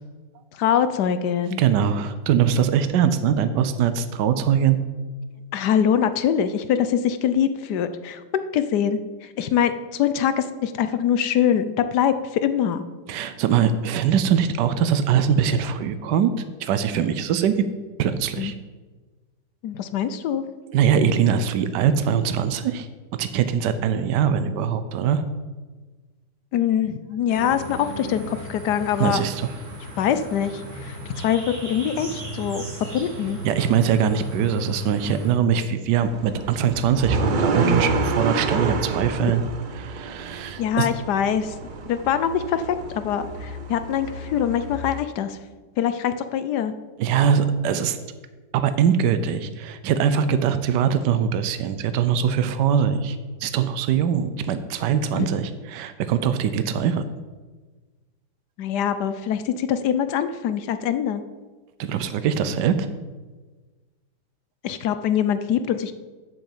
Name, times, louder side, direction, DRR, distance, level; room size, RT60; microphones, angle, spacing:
voice 1, 0.6-1.6 5.5-8.2 8.5-9.0 9.4-12.8 18.4-18.5 19.6-20.4 26.5-29.2 30.0-31.4 31.7-32.6 32.9-33.4 39.2-39.3 40.6-41.5 41.9-45.4 45.8-46.7 55.2-55.3 58.6-61.2 64.6-65.9, left 9 dB, 75° left, 11 dB, 1.3 m, -23 dB
voice 2, 1.6-4.8 13.1-16.3 16.6-17.5 18.0-18.5 20.7-22.9 23.2-25.2 29.0-29.5 33.4-39.4 39.7-40.9 47.0-48.0 48.5-53.2 53.4-57.0 61.8-62.9, right 8 dB, 80° right, 11 dB, 1.3 m, -22 dB
sound 1, 27.3-35.3, equal, 45° right, 2.4 m, -35 dB
sound 2, 36.0-45.0, right 3 dB, 65° right, 0.5 m, -28 dB
7.9 x 7.0 x 7.4 m, 1.3 s
omnidirectional pair, 1.8 m